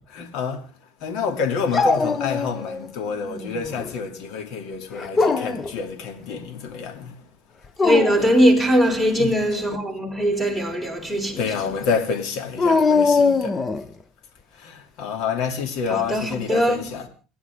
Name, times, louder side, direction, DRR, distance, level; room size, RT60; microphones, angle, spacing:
voice 1, 0.1-0.6 1.0-7.2 9.2-9.3 11.4-13.6 14.5-17.1, left 5 dB, 65° left, 2.8 m, -28 dB
Dog, 1.7-2.9 3.2-3.9 5.0-5.7 7.6-8.3 12.6-13.9, left 4 dB, 25° left, 1.1 m, -21 dB
voice 2, 7.8-11.4 15.9-16.8, equal, 5° left, 5.6 m, -20 dB
29.5 x 11.0 x 3.7 m
supercardioid pair, 100°, 0 cm